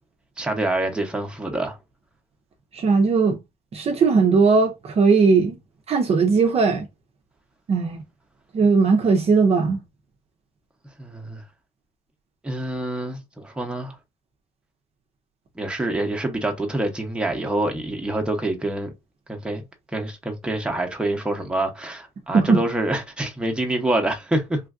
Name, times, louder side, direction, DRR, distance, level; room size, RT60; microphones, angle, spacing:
voice 1, 0.4-1.8 11.0-11.4 12.4-13.9 15.6-18.9 19.3-19.6 19.9-24.6, right 1 dB, 5° right, 0.8 m, -26 dB
voice 2, 2.7-3.4 3.7-5.6 5.9-6.9 7.7-8.0 8.5-9.8 22.3-22.6, right 4 dB, 35° right, 0.6 m, -18 dB
3.2 x 2.4 x 2.4 m
cardioid pair, 110°, 17 cm